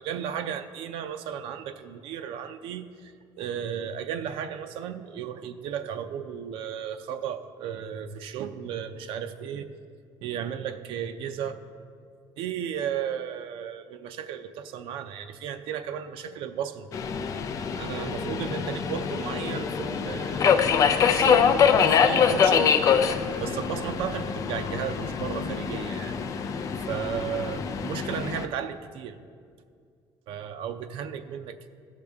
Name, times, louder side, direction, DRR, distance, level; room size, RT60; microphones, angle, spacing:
voice 1, 0.0-3.1 3.4-9.7 10.2-11.6 12.4-16.9 17.8-22.7 23.4-26.1 26.9-29.2 30.3-31.7, right 8 dB, 90° right, 8 dB, 0.5 m, -34 dB
Subway metro underground, 16.9-28.5, left 7 dB, 40° left, 0.5 m, -24 dB
16.0 x 6.6 x 3.5 m, 2.2 s
cardioid pair, 180°, 9 cm